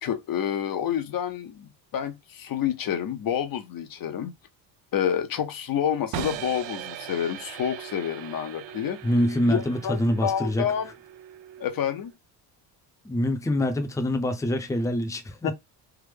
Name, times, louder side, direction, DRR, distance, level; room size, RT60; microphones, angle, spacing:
voice 1, 0.0-4.3 4.9-9.0 9.4-10.9 11.6-12.1 15.4-15.5, left 9 dB, 50° left, 0.7 m, -28 dB
sound 1, 6.1-12.1, right 11 dB, 80° right, 0.6 m, -39 dB
voice 2, 9.0-10.7 13.0-15.5, left 1 dB, 5° left, 0.6 m, -25 dB
3.5 x 2.0 x 3.3 m
cardioid pair, 105°, 44 cm